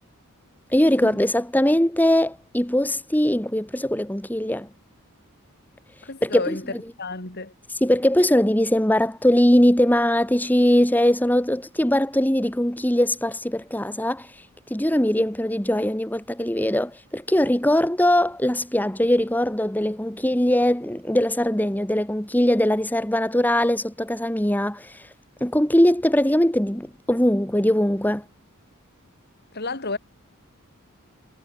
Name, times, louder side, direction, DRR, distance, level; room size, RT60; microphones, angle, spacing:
voice 1, 0.7-4.7 6.2-6.6 7.8-25.1 25.4-28.2, left 1 dB, 10° left, 1.8 m, -21 dB
voice 2, 6.0-6.6 7.0-7.5 29.5-30.0, left 3 dB, 50° left, 3.8 m, -31 dB
head